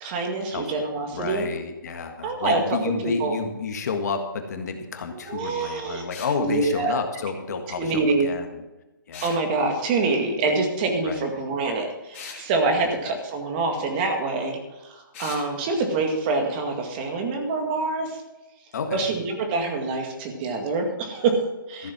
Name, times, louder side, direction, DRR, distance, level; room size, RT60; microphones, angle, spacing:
voice 1, 0.0-1.5 2.2-2.8 3.0-3.4 5.1-6.0 6.4-7.0 7.8-8.3 9.2-18.2 18.9-21.9, right 3 dB, 25° right, 3 dB, 2.1 m, -26 dB
voice 2, 1.1-8.6 9.1-9.3 11.0-11.2 18.7-19.1 21.8-21.9, left 5 dB, 50° left, 6 dB, 1.7 m, -30 dB
sound 1, 6.1-6.4 9.1-9.4 12.1-12.4 15.1-15.5, left 5 dB, 35° left, 3.3 m, -39 dB
14.5 x 7.5 x 6.0 m, 1.1 s
hypercardioid pair, 160°, 11 cm